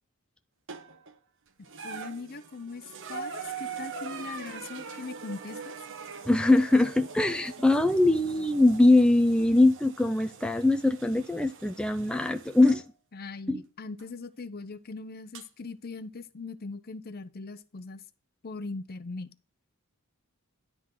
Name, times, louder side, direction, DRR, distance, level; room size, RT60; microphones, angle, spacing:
sound 1, 0.7-1.1 1.6-12.8 14.0-14.1 15.3-15.4, right 5 dB, 60° right, 1.0 m, -42 dB
voice 1, 1.8-5.8 13.1-18.0 18.4-19.3, left 3 dB, 45° left, 0.7 m, -40 dB
voice 2, 6.3-12.8 13.5-13.6, left 2 dB, 5° left, 0.4 m, -22 dB
11.0 x 3.8 x 6.5 m
head